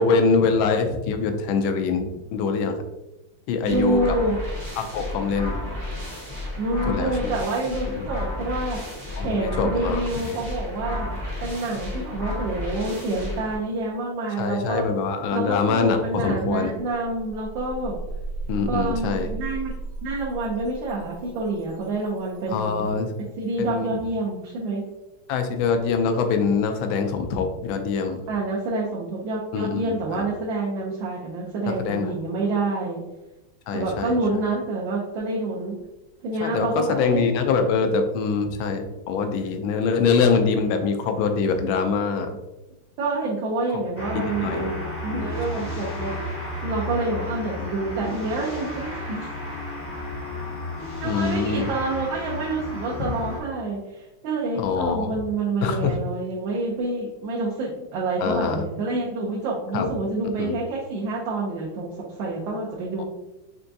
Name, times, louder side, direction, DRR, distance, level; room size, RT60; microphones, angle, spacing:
voice 1, 0.0-2.8 3.5-4.2 4.8-5.6 6.9-7.3 8.0-8.1 9.2-10.4 14.4-16.8 18.5-19.3 22.5-23.1 23.6-23.9 25.3-28.2 29.5-30.2 31.7-32.1 33.7-34.2 36.4-42.4 43.7-43.8 44.1-44.7 45.1-45.7 47.6-47.7 51.0-51.7 53.0-53.1 54.6-55.1 55.6-56.0 58.2-58.6 59.7-59.9 60.4-60.6 63.0-63.1, left 5 dB, 75° left, 6 dB, 1.3 m, -24 dB
voice 2, 3.6-4.4 6.5-8.8 9.2-11.1 11.4-14.9 15.3-18.0 18.7-19.7 20.0-22.9 23.2-24.8 28.3-33.0 33.7-35.8 36.2-37.3 43.0-44.8 45.0-46.1 46.6-49.3 51.0-63.0, right 2 dB, 70° right, -3 dB, 1.4 m, -27 dB
sound 1, 3.7-13.5, left 2 dB, 30° right, 0.8 m, -32 dB
sound 2, 17.0-23.2, right 3 dB, 85° right, 1.5 m, -36 dB
sound 3, 44.0-53.4, left 1 dB, 20° left, 0.3 m, -33 dB
4.6 x 3.4 x 2.6 m, 0.99 s
omnidirectional pair, 2.4 m